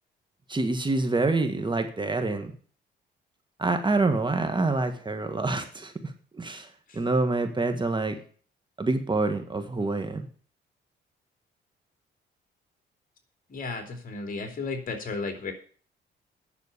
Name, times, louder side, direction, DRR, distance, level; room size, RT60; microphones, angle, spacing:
voice 1, 0.5-2.5 3.6-6.1 6.4-6.7 6.9-8.1 8.8-10.3, right 3 dB, 25° right, 7 dB, 1.6 m, -26 dB
voice 2, 13.5-15.5, left 4 dB, 45° left, 4 dB, 3.2 m, -34 dB
9.9 x 6.8 x 8.3 m, 0.44 s
cardioid pair, 90°, 20 cm